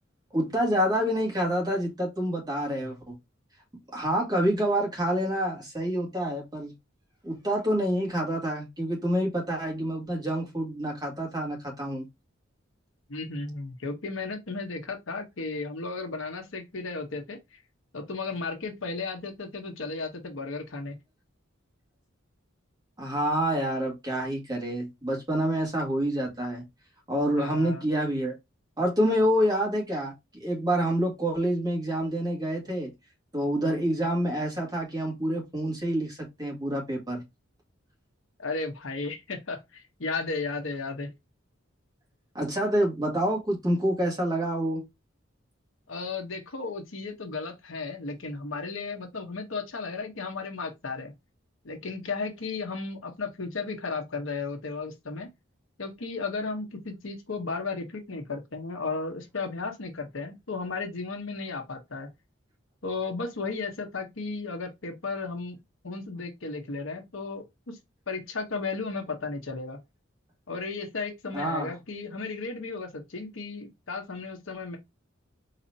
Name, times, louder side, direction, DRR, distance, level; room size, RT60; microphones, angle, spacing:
voice 1, 0.3-3.2 3.9-6.7 7.2-12.1 23.0-26.6 27.1-28.4 28.8-30.1 30.4-32.9 33.3-37.2 42.4-44.8 71.3-71.7, equal, 20° right, 1.7 m, -27 dB
voice 2, 13.1-17.6 17.9-21.0 27.4-27.9 38.4-41.1 45.9-51.1 51.6-55.3 55.8-62.1 62.8-67.8 68.1-69.8 70.5-74.8, left 4 dB, 75° left, 1.0 m, -34 dB
4.1 x 2.8 x 2.7 m
head